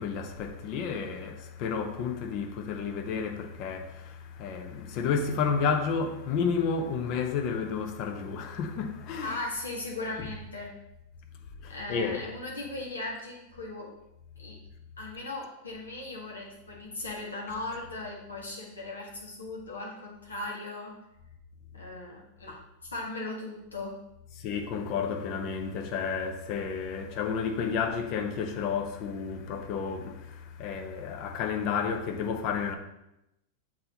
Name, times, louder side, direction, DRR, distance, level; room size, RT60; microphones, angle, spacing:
voice 1, 0.0-9.4 10.2-10.3 11.6-12.3 24.4-32.8, left 6 dB, 40° left, 0.8 m, -31 dB
voice 2, 9.2-10.7 11.7-13.9 14.4-14.6 15.0-20.9 21.7-22.6 22.9-23.9, left 2 dB, 75° left, 1.6 m, -38 dB
7.5 x 4.3 x 2.9 m
figure-of-eight pair, 90°, 0 cm